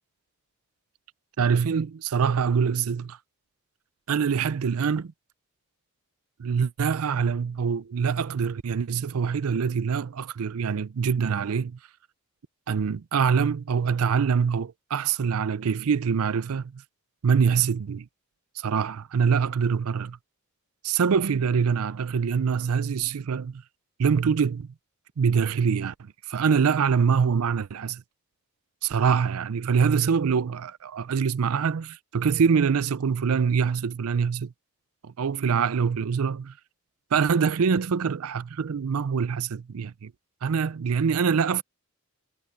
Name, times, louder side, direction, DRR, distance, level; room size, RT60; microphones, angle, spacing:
voice 1, 1.4-3.2 4.1-5.1 6.4-11.8 12.7-16.8 17.2-18.1 18.6-20.2 20.8-23.6 24.0-24.7 25.2-25.9 26.3-28.0 28.8-34.5 35.0-36.5 37.1-40.1 40.4-41.6, right 6 dB, 80° right, 0.5 m, -24 dB
head